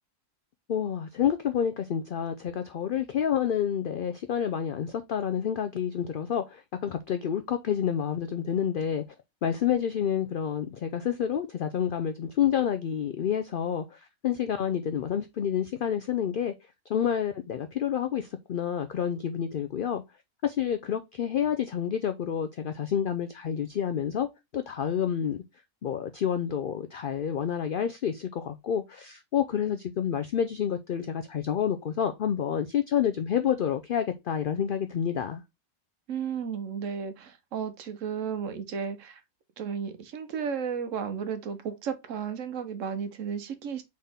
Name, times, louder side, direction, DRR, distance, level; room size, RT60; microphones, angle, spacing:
voice 1, 0.7-9.0 9.4-16.5 16.9-20.0 20.4-24.3 24.5-25.4 25.8-35.4, left 9 dB, 75° left, 0.4 m, -29 dB
voice 2, 36.1-39.2 39.6-43.8, right 7 dB, 65° right, 1.1 m, -33 dB
4.1 x 3.7 x 3.5 m
omnidirectional pair, 1.5 m